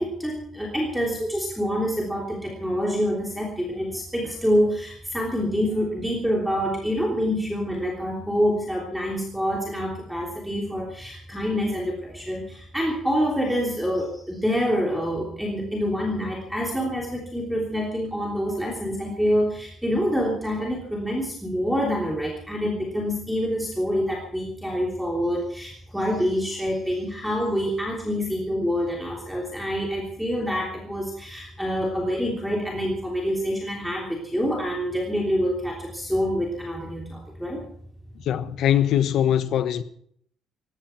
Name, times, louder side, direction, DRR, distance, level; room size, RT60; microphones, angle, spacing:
voice 1, 0.0-37.6, equal, ahead, 3.3 m, -26 dB
voice 2, 38.3-39.8, left 10 dB, 65° left, 1.2 m, -22 dB
19.0 x 16.5 x 4.5 m
cardioid pair, 160°, 0 cm